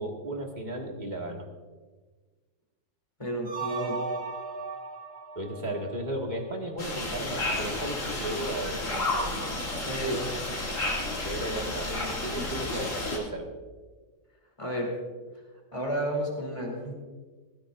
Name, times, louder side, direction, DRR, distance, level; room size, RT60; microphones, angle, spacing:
voice 1, 0.0-1.5 5.4-9.4 11.2-13.5, right 1 dB, 30° right, 1 dB, 1.9 m, -35 dB
voice 2, 3.2-4.0 9.8-10.3 14.6-14.9 15.7-16.9, right 1 dB, 20° left, -1 dB, 3.2 m, -31 dB
sound 1, 3.4-6.6, right 3 dB, 45° right, 1.2 m, -37 dB
sound 2, 6.8-13.2, left 2 dB, 55° left, 2.9 m, -31 dB
18.0 x 15.0 x 2.6 m, 1.4 s
omnidirectional pair, 1.6 m